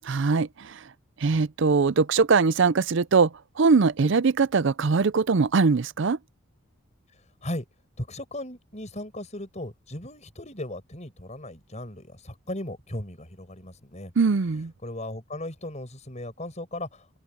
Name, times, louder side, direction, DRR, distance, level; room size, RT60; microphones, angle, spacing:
voice 1, 0.1-0.8 1.2-3.3 3.6-6.2 14.2-14.7, right 4 dB, 60° right, 0.5 m, -21 dB
voice 2, 8.0-14.1 14.8-17.1, left 1 dB, 35° left, 6.2 m, -37 dB
open air
head